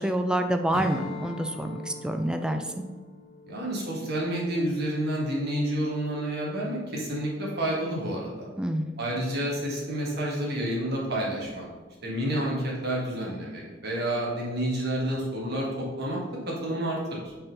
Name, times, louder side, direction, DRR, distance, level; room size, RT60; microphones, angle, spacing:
voice 1, 0.0-2.6 8.6-8.9, right 1 dB, 5° right, 6 dB, 0.3 m, -27 dB
Strum, 0.7-5.4, left 2 dB, 85° left, 1.0 m, -43 dB
voice 2, 3.5-8.5 9.0-11.7 12.0-17.3, right 1 dB, 55° right, -3 dB, 1.9 m, -29 dB
5.4 x 4.4 x 5.4 m, 1.3 s
head